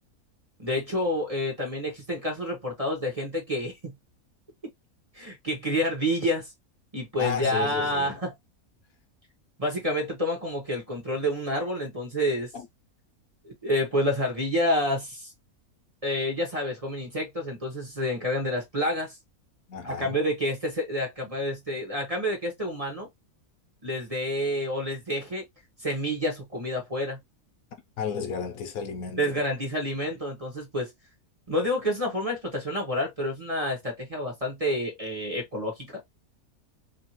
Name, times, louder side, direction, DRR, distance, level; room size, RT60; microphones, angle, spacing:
voice 1, 0.6-3.9 5.1-6.5 6.9-8.3 9.6-12.5 13.4-15.3 16.0-19.2 19.8-23.1 23.8-25.4 25.8-27.2 29.2-30.9 31.5-35.9, equal, 25° right, 1.0 m, -28 dB
voice 2, 7.2-8.2 12.5-12.7 19.7-20.2 28.0-29.3, left 7 dB, 70° left, 1.1 m, -33 dB
2.8 x 2.8 x 2.8 m
omnidirectional pair, 1.6 m